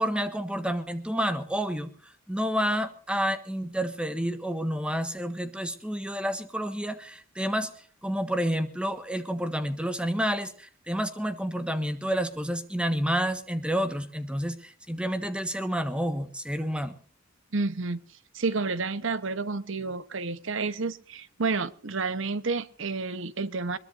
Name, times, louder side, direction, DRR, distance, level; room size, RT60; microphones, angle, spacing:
voice 1, 0.0-1.9 2.3-7.7 8.0-17.0, equal, 5° right, 10 dB, 1.4 m, -29 dB
voice 2, 17.5-18.0 18.3-23.8, right 3 dB, 65° right, 15 dB, 1.0 m, -30 dB
21.5 x 21.5 x 2.6 m, 0.42 s
head